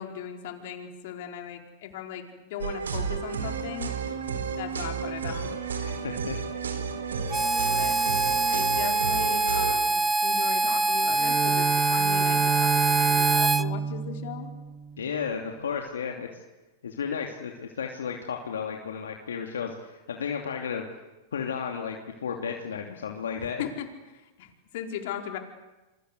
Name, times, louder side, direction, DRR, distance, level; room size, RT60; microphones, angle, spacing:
voice 1, 0.0-2.2 2.5-3.9 4.6-5.5 7.6-8.0 8.5-14.5 23.3-23.9 24.1-25.4, left 9 dB, 65° left, 4 dB, 4.7 m, -38 dB
sound 1, 2.6-9.7, right 5 dB, 90° right, 4.0 m, -32 dB
voice 2, 5.8-6.4 15.0-16.4 16.8-20.8 21.3-23.6, left 6 dB, 85° left, 2 dB, 2.8 m, -33 dB
Harmonica, 7.3-13.6, right 2 dB, 10° right, 0.9 m, -24 dB
Bowed string instrument, 11.0-15.2, right 8 dB, 35° right, 2.5 m, -29 dB
28.5 x 23.5 x 8.3 m, 1.1 s
hypercardioid pair, 115°, 0 cm